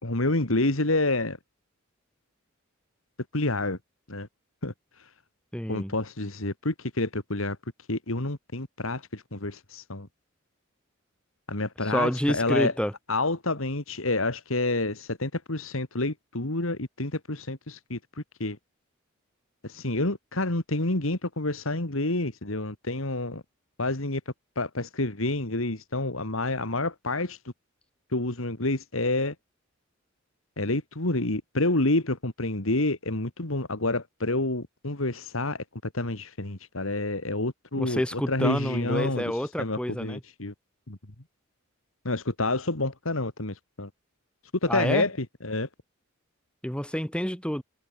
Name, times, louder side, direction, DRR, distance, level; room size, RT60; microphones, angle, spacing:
voice 1, 0.0-1.4 3.3-3.8 4.1-4.3 4.6-4.7 5.0-5.1 5.7-7.6 7.9-10.1 11.5-12.7 13.1-18.6 19.6-23.4 23.8-24.2 24.6-27.4 28.1-29.3 30.6-35.6 35.9-40.5 40.9-41.0 42.0-43.9 44.6-45.7, left 2 dB, 70° left, 2.7 m, -28 dB
voice 2, 5.5-5.9 11.9-12.9 37.7-40.2 44.7-45.1 46.6-47.6, equal, 5° left, 6.2 m, -28 dB
head